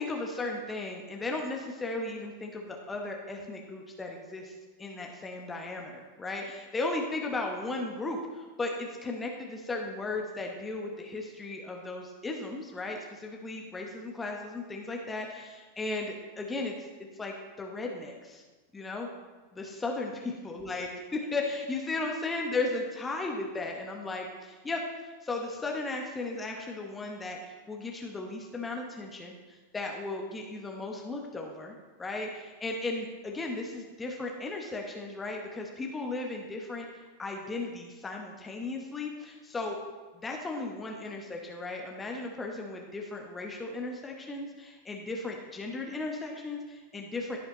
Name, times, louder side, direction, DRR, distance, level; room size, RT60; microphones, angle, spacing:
voice 1, 0.0-4.5 4.8-16.9 17.2-18.4 18.7-19.1 19.5-39.8 40.1-47.4, left 2 dB, 15° left, 1 dB, 1.1 m, -36 dB
16.0 x 5.7 x 3.1 m, 1.2 s
figure-of-eight pair, 90°, 0 cm